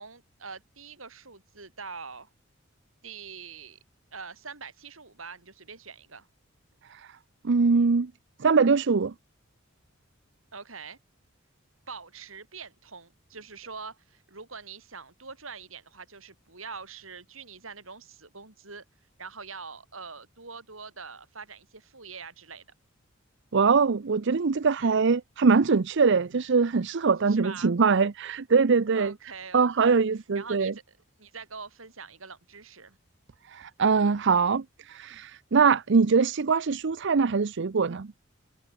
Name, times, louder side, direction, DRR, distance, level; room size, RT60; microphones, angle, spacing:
voice 1, 0.0-2.3 3.0-3.8 4.1-6.3 10.5-11.0 11.9-18.8 19.2-22.6 24.8-24.9 27.3-27.8 28.9-30.0 30.3-33.0, right 5 dB, 80° right, 5.9 m, -44 dB
voice 2, 7.4-8.1 8.4-9.1 23.5-29.1 29.5-30.7 33.5-38.1, right 5 dB, 60° right, 0.6 m, -23 dB
head